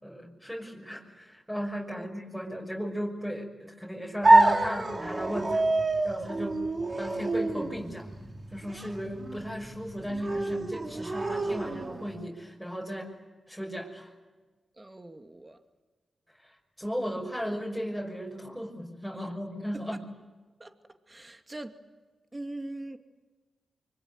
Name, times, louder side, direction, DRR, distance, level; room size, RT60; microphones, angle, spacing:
voice 1, 0.0-5.6 6.0-6.7 7.0-8.1 8.5-13.1 13.5-14.1 16.4-20.0, equal, 5° right, 6.2 m, -36 dB
sound 1, 4.2-12.2, right 2 dB, 40° right, 3.2 m, -27 dB
voice 2, 14.8-15.6 19.9-20.0 20.6-20.7 21.1-21.7 22.3-23.0, right 2 dB, 25° right, 2.4 m, -41 dB
25.0 x 24.5 x 9.5 m
cardioid pair, 50°, 0 cm